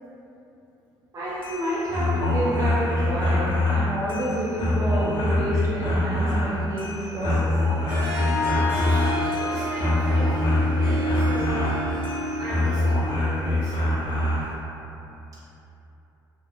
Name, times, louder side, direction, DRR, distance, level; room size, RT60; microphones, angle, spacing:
voice 1, 1.1-7.6, equal, 30° right, -8 dB, 0.6 m, -29 dB
sound 1, 1.3-14.5, left 1 dB, 50° left, 0.8 m, -24 dB
Harp, 7.9-13.3, equal, 90° right, 0.6 m, -29 dB
voice 2, 8.7-11.7 12.4-13.8, equal, 70° right, -12 dB, 1.2 m, -38 dB
2.8 x 2.3 x 2.5 m, 2.9 s
hypercardioid pair, 55°, 11 cm